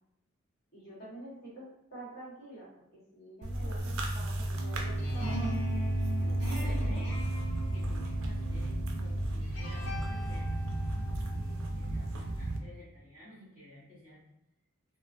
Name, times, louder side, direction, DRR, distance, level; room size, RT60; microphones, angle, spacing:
voice 1, 0.7-2.8 3.1-5.4 6.6-7.0, right 1 dB, 45° left, -8 dB, 1.2 m, -47 dB
sound 1, 3.4-12.6, right 1 dB, 75° right, 0.4 m, -33 dB
voice 2, 3.6-4.1 6.1-7.3 7.7-10.7 11.3-14.2, left 1 dB, 10° right, -15 dB, 0.9 m, -53 dB
sound 2, 4.5-12.5, right 1 dB, 70° left, 1.1 m, -42 dB
2.3 x 2.3 x 2.5 m, 0.81 s
head